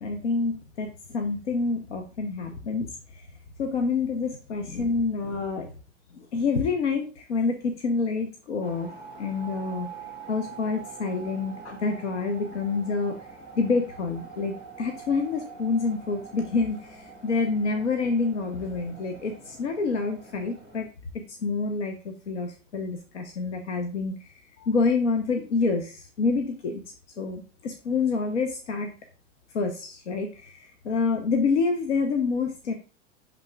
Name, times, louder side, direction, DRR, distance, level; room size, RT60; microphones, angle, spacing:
voice 1, 0.0-3.2 3.6-5.7 6.1-8.9 9.2-9.9 10.3-13.1 13.6-20.9 21.1-26.8 27.2-28.9 29.5-32.7, left 4 dB, 70° left, 5 dB, 1.1 m, -27 dB
sound 1, 8.6-20.9, right 5 dB, 85° left, 2.5 m, -45 dB
10.5 x 3.8 x 3.4 m, 0.36 s
figure-of-eight pair, 80°, 37 cm